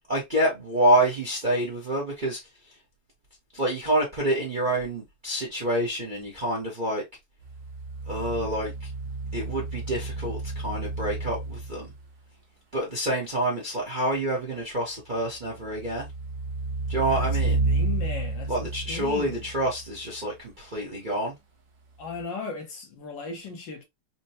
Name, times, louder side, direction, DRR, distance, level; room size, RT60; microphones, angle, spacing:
voice 1, 0.1-2.4 3.5-7.0 8.1-8.9 9.3-11.9 12.7-16.1 16.9-17.6 18.5-21.3, right 1 dB, 35° right, 0.8 m, -27 dB
sound 1, 7.4-12.0 15.4-20.0 22.1-22.2, right 3 dB, 65° right, 1.4 m, -31 dB
voice 2, 17.0-17.3 17.7-19.5 22.0-23.8, left 5 dB, 65° left, 1.5 m, -37 dB
4.3 x 2.1 x 2.8 m
omnidirectional pair, 2.3 m